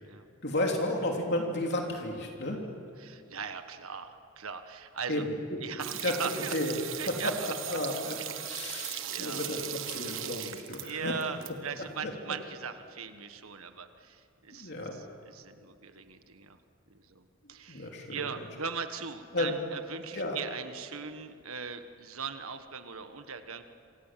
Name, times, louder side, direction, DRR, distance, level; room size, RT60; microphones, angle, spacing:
voice 1, 0.4-2.6 5.1-5.3 6.0-6.1 6.5-6.8 7.1-7.3 7.7-11.1 12.0-12.1 14.5-14.9 17.7-18.2 19.3-19.5 20.1-20.4, left 1 dB, 50° left, 1 dB, 3.1 m, -32 dB
voice 2, 3.0-5.2 5.6-6.5 7.0-7.5 8.7-9.4 10.8-16.6 16.9-23.6, right 6 dB, 85° right, 8 dB, 1.6 m, -40 dB
sound 1, 5.8-11.5 11.8-11.9, right 11 dB, 65° right, 1.5 m, -38 dB
27.0 x 27.0 x 7.6 m, 2.3 s
head